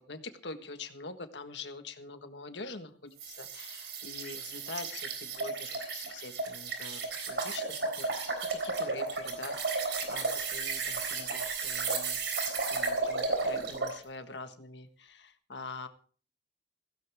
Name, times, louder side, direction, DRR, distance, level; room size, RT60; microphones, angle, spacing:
voice 1, 0.0-9.5 10.1-15.9, left 3 dB, 75° left, 8 dB, 1.6 m, -45 dB
sound 1, 3.2-14.0, right 4 dB, 70° right, 3.8 m, -34 dB
16.0 x 16.0 x 3.6 m, 0.42 s
head